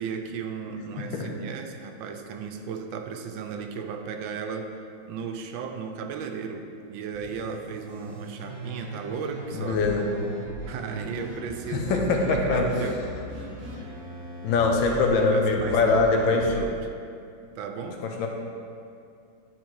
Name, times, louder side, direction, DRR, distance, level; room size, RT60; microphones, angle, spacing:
voice 1, 0.0-4.8 5.0-9.9 10.7-13.0 14.9-16.9 17.5-18.0, right 6 dB, 85° right, 5 dB, 1.4 m, -35 dB
sound 1, 7.1-16.6, right 2 dB, 45° right, 1.4 m, -39 dB
voice 2, 9.5-10.1 11.7-12.7 14.4-16.5 18.0-18.3, left 3 dB, 80° left, 2 dB, 1.6 m, -23 dB
9.6 x 4.2 x 4.7 m, 2.4 s
omnidirectional pair, 2.1 m